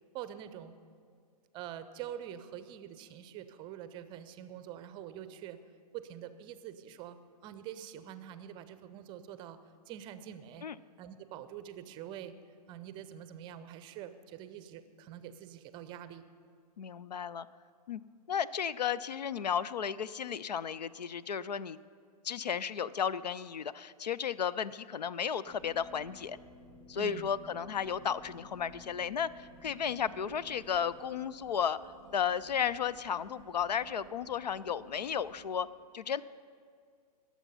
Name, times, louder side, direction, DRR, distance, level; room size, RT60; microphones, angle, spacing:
voice 1, 0.1-0.7 1.5-5.6 5.9-7.2 7.4-10.7 11.0-12.3 12.7-16.3 26.9-27.3, right 10 dB, 25° right, 12 dB, 0.6 m, -45 dB
voice 2, 16.8-17.5 17.9-18.0 18.3-21.8 22.2-26.4 26.9-31.8 32.1-35.7 35.9-36.2, left 8 dB, 80° left, 18 dB, 0.4 m, -34 dB
sound 1, 25.4-35.4, equal, 25° left, 2.9 m, -55 dB
19.5 x 7.3 x 5.5 m, 2.1 s
figure-of-eight pair, 120°, 21 cm